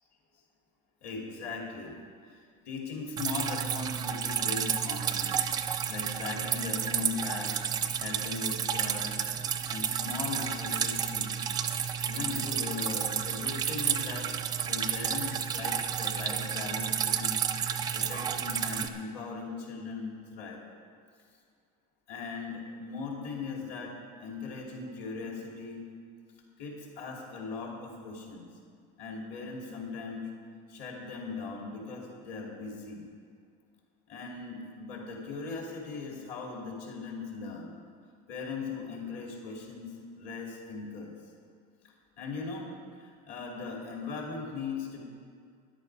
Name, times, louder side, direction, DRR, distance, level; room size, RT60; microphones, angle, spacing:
voice 1, 1.0-2.0 2.2-5.4 5.9-7.6 8.0-9.2 9.7-11.5 12.1-14.3 14.6-17.4 17.9-20.6 22.1-25.8 26.6-28.5 29.0-30.2 30.7-33.1 34.1-37.8 38.3-41.1 41.8-45.0, left 4 dB, 50° left, -1 dB, 2.8 m, -39 dB
Drip, 3.2-18.9, right 8 dB, 20° right, 0.4 m, -31 dB
13.0 x 11.0 x 4.7 m, 2.2 s
cardioid pair, 170°, 21 cm